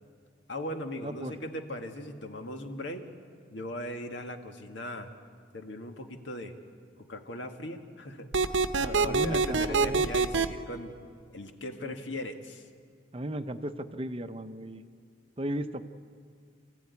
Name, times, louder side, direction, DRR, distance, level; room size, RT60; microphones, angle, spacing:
voice 1, 0.5-3.0 3.5-5.1 5.5-6.5 7.0-8.3 8.9-10.9 11.3-12.7, left 1 dB, 75° left, 5 dB, 1.8 m, -39 dB
voice 2, 1.0-1.3 8.8-10.1 11.8-11.9 13.1-14.8 15.4-15.9, right 1 dB, 30° right, 9 dB, 0.7 m, -35 dB
sound 1, 8.3-10.5, right 4 dB, 80° right, 0.9 m, -25 dB
28.0 x 14.0 x 9.6 m, 2.2 s
head